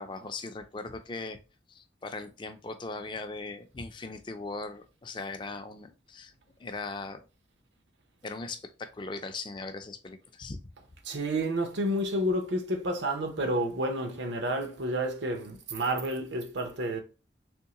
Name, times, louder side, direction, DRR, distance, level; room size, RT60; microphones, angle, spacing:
voice 1, 0.0-1.4 1.7-6.3 6.6-7.2 8.2-10.7, left 3 dB, 25° left, 0.4 m, -39 dB
voice 2, 11.0-17.0, right 1 dB, 75° right, 0.8 m, -30 dB
3.6 x 3.1 x 2.9 m
head